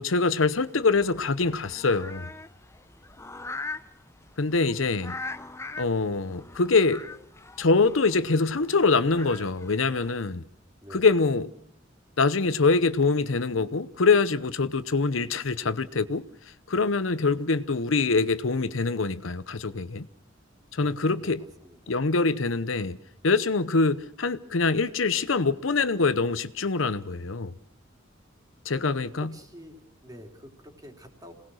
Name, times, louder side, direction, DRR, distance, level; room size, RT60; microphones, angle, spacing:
voice 1, 0.0-2.3 4.4-5.2 5.8-7.1 7.6-10.4 10.9-11.5 12.2-16.3 16.7-20.1 20.7-21.4 21.9-23.0 23.2-27.5 28.7-29.3, left 4 dB, 80° left, 0.9 m, -24 dB
sound 1, 0.6-10.1, left 3 dB, 15° left, 0.8 m, -42 dB
voice 2, 10.8-11.2 20.7-22.0 29.2-31.3, equal, 20° right, 3.6 m, -48 dB
27.0 x 19.5 x 6.4 m
head